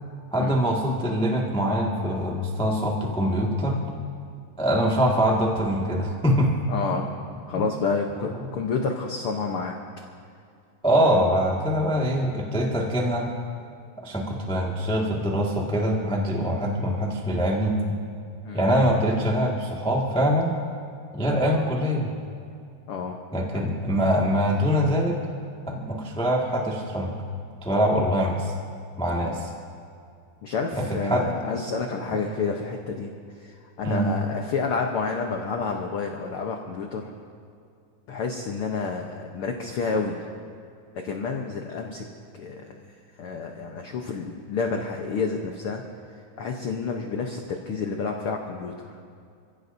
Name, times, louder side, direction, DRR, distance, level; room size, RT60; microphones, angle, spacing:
voice 1, 0.3-3.8 4.6-6.5 7.5-7.6 10.8-13.3 14.0-17.7 18.5-20.5 21.1-22.1 23.3-25.2 25.7-27.1 27.6-28.5 29.0-29.5 30.7-31.3 32.1-32.2 33.8-34.1, equal, 10° left, -2 dB, 0.3 m, -23 dB
voice 2, 6.7-7.2 7.5-9.7 10.9-11.1 18.4-18.7 22.9-23.2 23.5-23.6 29.2-29.4 30.4-37.1 38.1-40.2 40.9-42.1 42.3-42.9 43.2-45.8 46.4-49.0, left 4 dB, 80° left, 2 dB, 1.2 m, -29 dB
28.0 x 15.5 x 2.7 m, 2.4 s
omnidirectional pair, 3.7 m